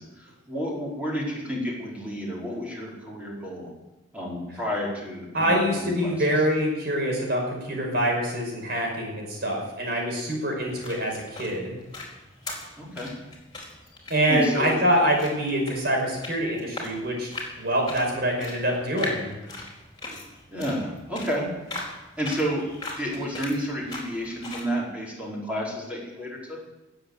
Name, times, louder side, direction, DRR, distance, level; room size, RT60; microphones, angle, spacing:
voice 1, 0.0-3.7 4.1-6.1 12.8-13.1 14.3-14.7 20.5-21.5 22.2-26.6, equal, 5° right, -5 dB, 4.6 m, -30 dB
voice 2, 5.3-11.7 14.1-17.3 17.6-19.3, equal, 55° right, 0 dB, 5.7 m, -25 dB
sound 1, 10.6-24.7, left 2 dB, 25° left, 4.3 m, -40 dB
19.5 x 8.0 x 8.1 m, 1.0 s
head